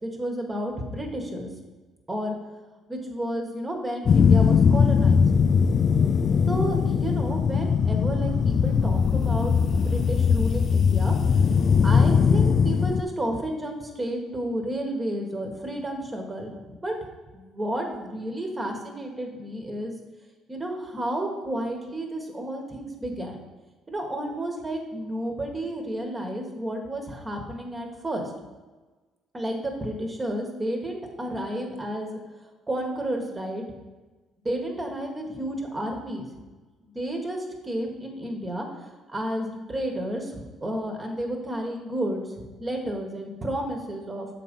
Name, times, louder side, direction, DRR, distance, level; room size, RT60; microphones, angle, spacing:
voice 1, 0.0-1.5 2.1-2.3 2.9-5.2 6.5-11.2 11.8-16.9 17.3-19.9 20.5-23.4 23.9-28.3 29.3-32.2 32.7-33.6 34.4-36.2 36.9-44.3, right 1 dB, 20° right, 2 dB, 1.4 m, -31 dB
sound 1, 4.1-13.0, left 6 dB, 45° left, 0.4 m, -20 dB
7.1 x 3.9 x 5.3 m, 1.2 s
cardioid pair, 95°, 0 cm